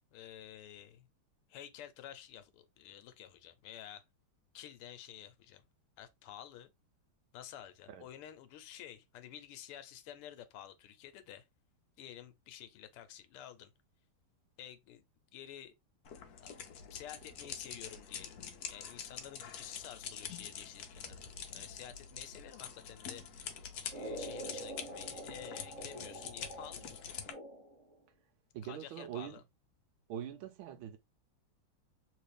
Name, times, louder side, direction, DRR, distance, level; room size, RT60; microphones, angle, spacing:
voice 1, 0.1-1.1 1.5-4.0 4.5-5.6 6.0-6.7 7.3-11.5 12.0-13.7 14.6-15.0 15.3-15.7 16.4-16.5 16.9-18.4 18.7-27.2 28.6-29.4, left 11 dB, 90° left, 1.6 m, -51 dB
sound 1, 16.0-27.3, left 7 dB, 70° left, 0.9 m, -46 dB
sound 2, 23.9-27.9, right 1 dB, 25° right, 0.9 m, -46 dB
voice 2, 28.5-29.4 30.1-31.0, right 10 dB, 75° right, 1.4 m, -43 dB
3.2 x 3.1 x 3.2 m
omnidirectional pair, 2.4 m